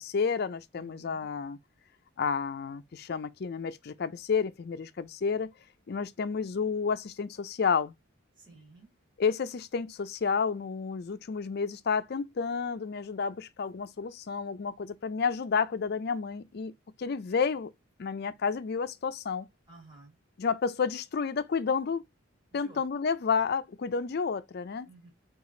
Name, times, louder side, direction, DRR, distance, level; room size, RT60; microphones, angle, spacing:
voice 1, 0.0-1.6 2.2-5.5 5.9-7.9 9.2-16.7 17.0-17.7 18.0-19.5 20.4-22.0 22.5-24.9, left 5 dB, 50° left, 0.4 m, -30 dB
voice 2, 0.7-1.3 8.4-8.9 19.7-20.2 22.5-22.8 24.8-25.1, right 3 dB, 25° right, 1.6 m, -54 dB
4.9 x 2.4 x 3.7 m
head